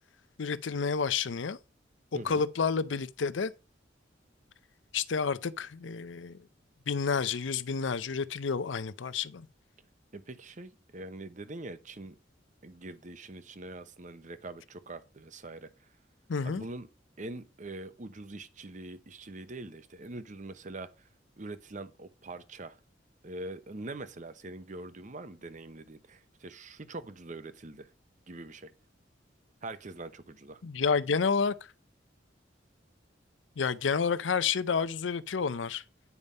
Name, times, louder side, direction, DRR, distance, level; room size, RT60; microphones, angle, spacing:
voice 1, 0.4-1.6 2.2-3.5 4.9-6.4 6.9-9.5 16.3-16.6 30.6-31.5 33.6-35.8, left 5 dB, 90° left, 0.6 m, -30 dB
voice 2, 2.1-2.4 10.1-12.1 12.6-15.9 16.4-16.9 17.2-21.1 21.4-22.8 23.2-27.9 28.3-28.7 29.6-30.6, right 2 dB, 40° right, 0.8 m, -43 dB
9.5 x 5.3 x 5.4 m
head